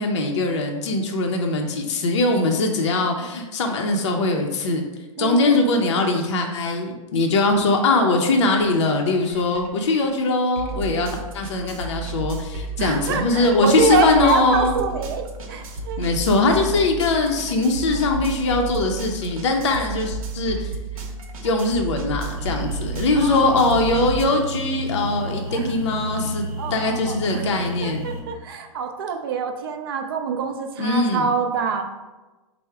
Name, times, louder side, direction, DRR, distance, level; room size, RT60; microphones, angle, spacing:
voice 1, 0.0-4.8 5.2-11.1 11.3-14.8 16.0-20.7 21.4-28.1 30.8-31.3, left 3 dB, 55° left, 2 dB, 0.5 m, -21 dB
voice 2, 5.2-5.8 12.8-16.0 23.2-23.8 25.5-25.7 26.6-31.8, right 5 dB, 40° right, 4 dB, 0.4 m, -26 dB
sound 1, 8.6-8.7 9.1-24.2, right 3 dB, 75° right, 0.8 m, -33 dB
sound 2, 22.3-28.2, right 1 dB, 15° left, 0.9 m, -32 dB
4.4 x 2.0 x 4.6 m, 1.2 s
hypercardioid pair, 175°, 18 cm